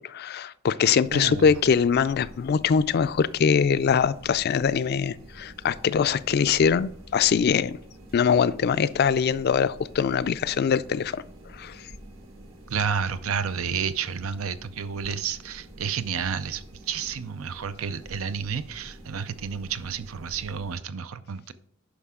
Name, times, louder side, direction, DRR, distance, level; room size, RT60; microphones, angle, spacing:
voice 1, 0.0-7.8 8.1-11.2 11.5-11.8, left 6 dB, 50° left, 0.3 m, -23 dB
sound 1, 1.0-20.8, right 1 dB, 70° right, 1.6 m, -47 dB
voice 2, 1.1-1.5 12.7-21.5, right 6 dB, 90° right, 0.6 m, -30 dB
9.9 x 5.8 x 3.7 m
head